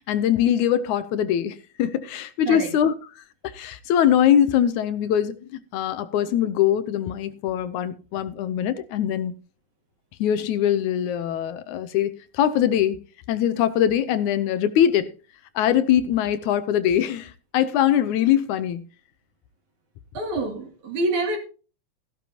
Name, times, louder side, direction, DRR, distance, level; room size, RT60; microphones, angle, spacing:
voice 1, 0.1-9.3 10.2-13.0 13.3-15.1 15.6-18.8, left 10 dB, 75° left, 2.1 m, -22 dB
voice 2, 20.1-21.4, right 2 dB, 65° right, 4.0 m, -26 dB
15.0 x 12.5 x 2.9 m
omnidirectional pair, 3.6 m